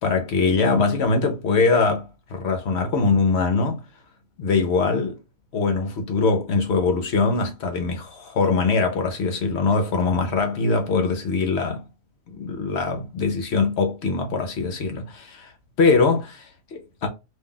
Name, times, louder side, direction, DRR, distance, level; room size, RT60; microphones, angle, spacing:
voice 1, 0.0-3.8 4.4-5.2 5.5-11.8 12.3-15.5 15.8-17.1, left 4 dB, 60° left, 0.8 m, -22 dB
2.7 x 2.3 x 3.6 m
omnidirectional pair, 1.4 m